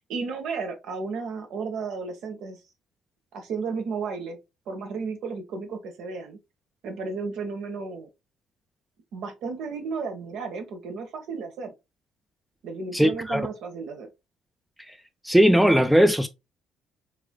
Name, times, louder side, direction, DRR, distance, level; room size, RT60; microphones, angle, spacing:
voice 1, 0.0-2.6 3.3-4.4 4.7-6.4 6.8-8.1 9.1-11.7 12.6-14.1, right 4 dB, 65° right, 1.2 m, -33 dB
voice 2, 12.9-13.4 15.2-16.3, equal, 5° right, 0.5 m, -18 dB
4.7 x 3.8 x 2.2 m
hypercardioid pair, 50°, 0 cm